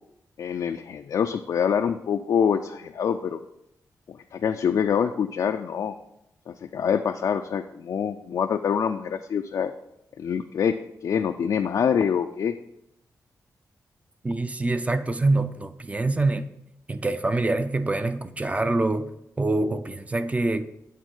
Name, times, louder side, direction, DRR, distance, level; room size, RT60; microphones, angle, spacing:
voice 1, 0.4-3.4 4.1-6.0 6.5-9.7 10.2-12.5, left 7 dB, 65° left, 0.4 m, -25 dB
voice 2, 14.2-16.5 16.9-19.1 19.4-20.7, right 2 dB, 20° right, 0.5 m, -25 dB
8.4 x 3.6 x 6.3 m
cardioid pair, 105°, 7 cm